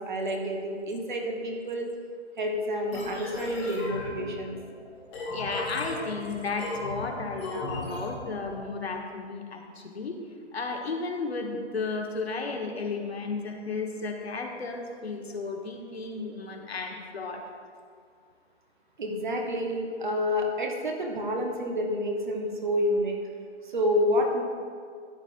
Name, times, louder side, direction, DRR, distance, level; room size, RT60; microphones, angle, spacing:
voice 1, 0.0-1.9 2.4-4.5 19.0-23.2 23.6-24.4, equal, 40° right, 1 dB, 1.2 m, -28 dB
sound 1, 2.9-8.6, left 2 dB, 5° left, 0.9 m, -37 dB
voice 2, 5.3-10.2 10.5-17.5, left 3 dB, 60° left, 2 dB, 1.3 m, -33 dB
13.5 x 8.9 x 2.6 m, 2.2 s
hypercardioid pair, 165°, 36 cm